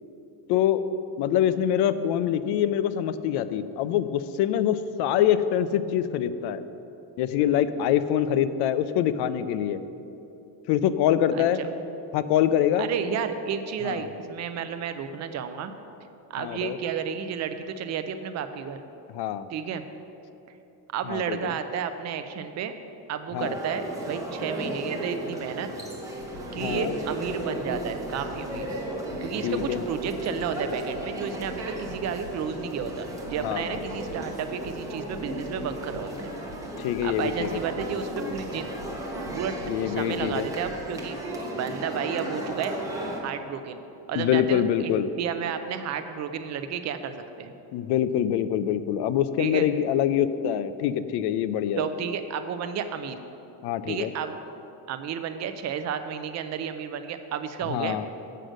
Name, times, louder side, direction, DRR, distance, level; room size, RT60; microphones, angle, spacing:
voice 1, 0.5-0.8 1.2-6.6 7.2-9.8 10.7-11.6 12.1-12.9 13.8-14.1 16.4-16.8 19.1-19.5 21.1-21.4 23.3-23.5 26.5-26.9 29.4-29.8 33.4-33.8 36.8-37.6 39.7-40.5 44.1-45.1 47.7-51.8 53.6-54.1 57.7-58.0, left 10 dB, 70° left, 13 dB, 0.5 m, -25 dB
voice 2, 11.3-11.7 12.8-15.7 16.3-18.8 19.5-19.8 20.9-22.7 23.1-25.7 26.5-28.7 29.2-36.3 37.0-38.7 39.3-39.6 39.8-41.2 41.5-42.7 43.2-43.8 44.1-47.5 49.4-49.7 51.8-53.2 53.9-54.4 54.9-58.1, right 7 dB, 40° right, 9 dB, 0.4 m, -32 dB
sound 1, 23.4-43.2, right 1 dB, 10° right, 0.8 m, -35 dB
sound 2, 26.2-40.9, left 2 dB, 90° left, 2.2 m, -47 dB
7.7 x 6.4 x 6.3 m, 2.9 s
cardioid pair, 170°, 41 cm